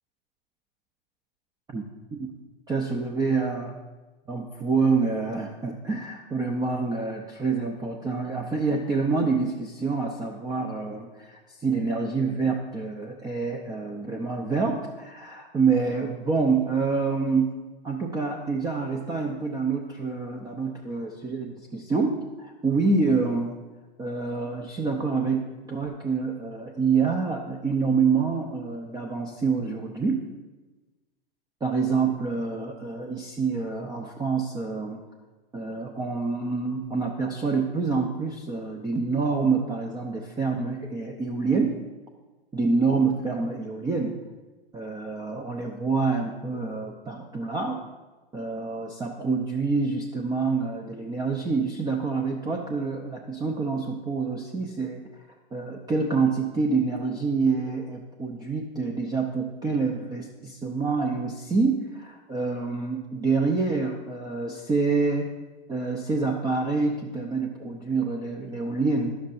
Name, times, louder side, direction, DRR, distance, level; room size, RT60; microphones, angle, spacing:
voice 1, 2.7-3.8 4.3-17.6 17.8-23.6 24.0-30.2 31.6-35.0 35.5-41.8 42.5-44.2 44.7-47.8 48.3-55.2 55.5-65.3 65.7-69.2, right 4 dB, 15° right, 1 dB, 0.6 m, -27 dB
11.0 x 7.2 x 2.6 m, 1.2 s
hypercardioid pair, 110°, 29 cm